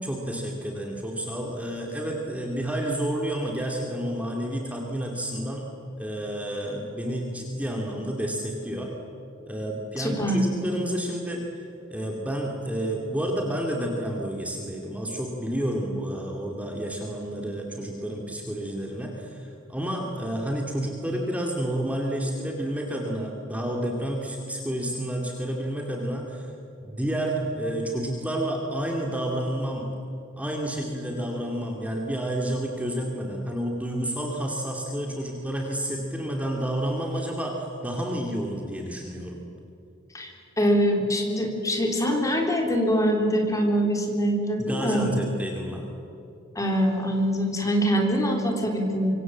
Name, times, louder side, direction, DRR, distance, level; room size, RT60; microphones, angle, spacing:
voice 1, 0.0-5.7 6.0-8.9 9.5-11.4 11.9-26.5 26.8-29.9 30.4-39.4 44.6-45.9, right 1 dB, 5° right, 0 dB, 2.6 m, -30 dB
voice 2, 10.0-10.5 40.1-40.3 40.6-45.1 46.6-49.1, equal, 15° left, 2 dB, 3.7 m, -24 dB
25.5 x 24.5 x 7.6 m, 2.8 s
head